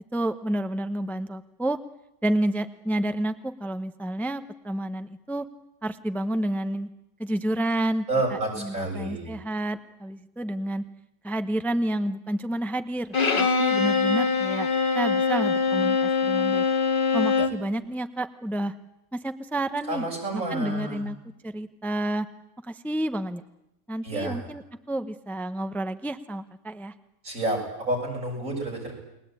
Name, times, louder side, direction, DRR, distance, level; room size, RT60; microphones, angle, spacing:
voice 1, 0.1-1.8 2.2-5.5 5.8-6.9 7.2-8.1 8.6-10.8 11.2-14.7 14.9-16.6 17.1-18.7 19.1-20.0 20.3-21.2 21.4-22.3 22.6-23.4 23.9-24.6 24.9-26.9, right 1 dB, ahead, 10 dB, 0.8 m, -29 dB
voice 2, 8.1-9.3 19.9-21.0 24.0-24.4 27.2-28.9, right 2 dB, 85° right, 0 dB, 7.7 m, -29 dB
Bowed string instrument, 13.1-17.6, left 5 dB, 40° left, 2.0 m, -23 dB
30.0 x 21.0 x 9.0 m, 0.85 s
omnidirectional pair, 1.4 m